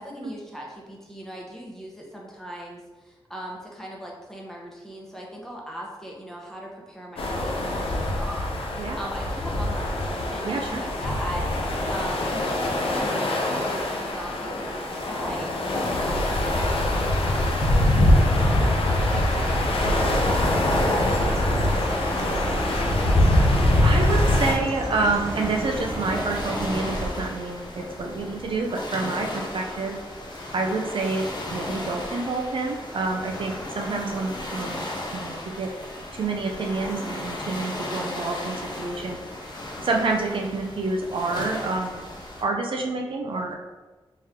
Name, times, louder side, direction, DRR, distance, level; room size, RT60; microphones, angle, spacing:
voice 1, 0.0-22.2, equal, 5° left, -3 dB, 0.9 m, -39 dB
sound 1, 7.2-24.5, left 1 dB, 75° left, 0.5 m, -23 dB
voice 2, 10.4-10.8 23.8-30.0 30.5-34.8 35.1-35.7 36.1-39.2 39.8-42.0 42.4-43.6, right 3 dB, 65° right, 1 dB, 0.5 m, -28 dB
Chirp tweet, 19.3-27.1, right 1 dB, 30° right, 0.7 m, -32 dB
sound 2, 24.1-42.4, left 1 dB, 50° left, 0.8 m, -36 dB
3.6 x 3.1 x 2.9 m, 1.2 s
cardioid pair, 70°, 10 cm